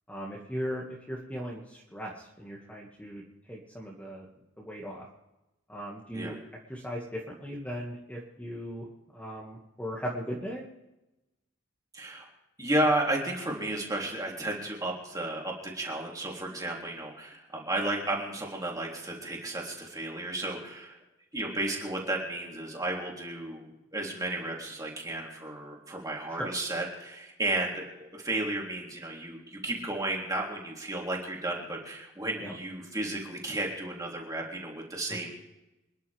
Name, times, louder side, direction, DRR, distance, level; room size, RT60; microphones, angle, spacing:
voice 1, 0.1-3.2 3.5-4.3 4.6-5.1 5.7-6.4 6.7-8.9 9.1-10.7 26.4-26.5 32.4-32.5 35.1-35.3, equal, 5° left, -4 dB, 2.2 m, -38 dB
voice 2, 11.9-12.3 12.6-21.0 21.3-23.7 23.9-35.3, right 1 dB, 15° right, -2 dB, 3.6 m, -33 dB
27.0 x 11.5 x 3.6 m, 0.97 s
head